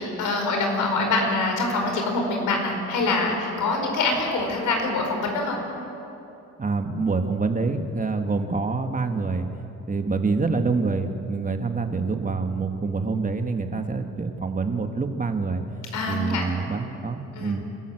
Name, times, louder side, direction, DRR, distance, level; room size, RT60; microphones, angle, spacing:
voice 1, 0.0-5.6 15.9-16.4 17.3-17.5, left 2 dB, 85° left, 2 dB, 4.6 m, -25 dB
voice 2, 6.6-9.5 9.9-15.6 16.1-17.6, right 4 dB, 25° right, 6 dB, 1.7 m, -26 dB
28.0 x 13.5 x 7.8 m, 2.9 s
cardioid pair, 90°, 30 cm